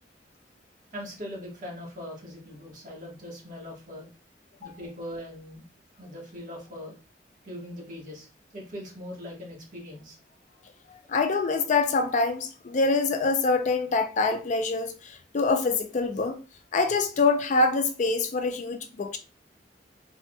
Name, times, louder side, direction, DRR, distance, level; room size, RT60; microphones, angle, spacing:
voice 1, 0.9-4.1 4.6-5.6 6.0-6.9 7.4-8.3 8.5-10.2, left 1 dB, 50° right, 1.4 m, -40 dB
voice 2, 10.9-16.4 16.7-19.2, left 3 dB, 45° left, 0.4 m, -25 dB
3.3 x 2.7 x 2.3 m
head